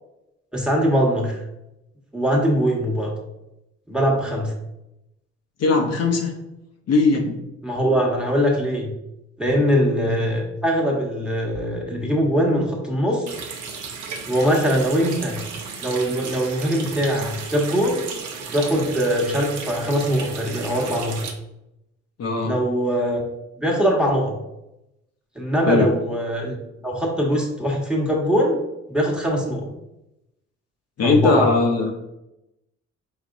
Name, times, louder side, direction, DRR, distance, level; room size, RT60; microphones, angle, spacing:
voice 1, 0.5-1.4 2.1-3.1 3.9-4.5 7.6-8.9 9.4-13.2 14.2-15.4 15.8-18.1 18.5-21.2 22.4-23.2 23.6-24.3 25.3-26.6 26.8-28.6 28.9-29.7 31.0-31.5, equal, 5° right, -1 dB, 1.3 m, -22 dB
voice 2, 5.6-6.3 6.9-7.4 10.1-10.2 22.2-22.5 25.7-25.9 31.0-31.9, left 3 dB, 55° left, 1 dB, 0.8 m, -19 dB
Water tap faucet, 13.3-21.3, right 5 dB, 75° right, 0.8 m, -34 dB
5.0 x 4.2 x 2.6 m, 0.90 s
cardioid pair, 90°, 30 cm